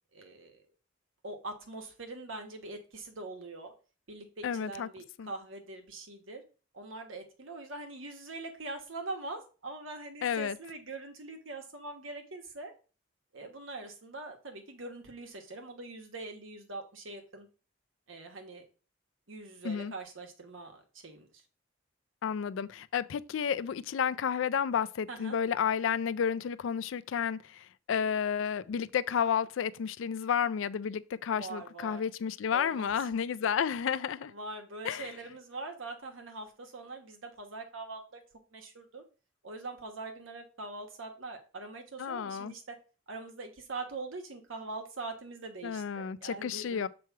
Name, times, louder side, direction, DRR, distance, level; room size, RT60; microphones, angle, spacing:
voice 1, 0.1-0.6 1.2-3.7 4.1-6.4 6.7-12.7 13.3-17.5 18.1-18.6 19.3-21.3 25.1-25.4 31.3-32.0 32.5-32.9 34.3-38.2 38.5-39.0 39.4-42.7 43.1-46.9, right 2 dB, 85° right, 1.3 m, -43 dB
voice 2, 4.4-4.9 5.2-5.3 10.2-10.6 19.6-19.9 22.2-34.3 34.8-35.1 42.0-42.5 45.6-46.9, left 7 dB, 75° left, 0.4 m, -31 dB
6.9 x 3.1 x 4.6 m
head